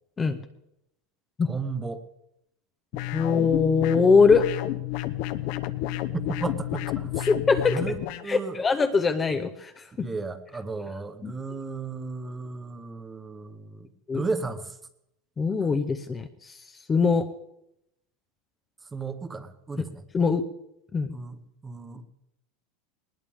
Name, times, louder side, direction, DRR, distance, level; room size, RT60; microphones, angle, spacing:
voice 1, 1.4-2.0 6.1-7.3 7.7-8.0 8.2-8.6 9.9-14.8 18.9-20.0 21.1-21.4 21.6-22.0, right 4 dB, 10° right, 10 dB, 1.0 m, -34 dB
sound 1, 2.9-8.2, left 14 dB, 50° left, 0.9 m, -31 dB
voice 2, 3.1-4.5 7.3-7.8 8.3-10.1 11.2-11.3 14.1-14.2 15.4-16.6 16.9-17.3 20.1-20.4 20.9-21.2, left 5 dB, 15° left, 7 dB, 0.7 m, -22 dB
20.5 x 20.0 x 3.6 m, 0.81 s
supercardioid pair, 170°, 0 cm